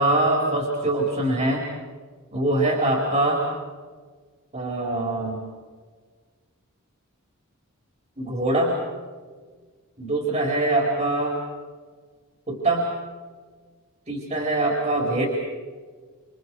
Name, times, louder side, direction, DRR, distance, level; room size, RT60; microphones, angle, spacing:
voice 1, 0.0-1.6 2.3-3.5 4.5-5.4 8.2-8.8 10.0-11.4 12.5-12.9 14.1-15.3, right 2 dB, 30° right, -1 dB, 4.7 m, -23 dB
29.0 x 27.5 x 5.0 m, 1.5 s
head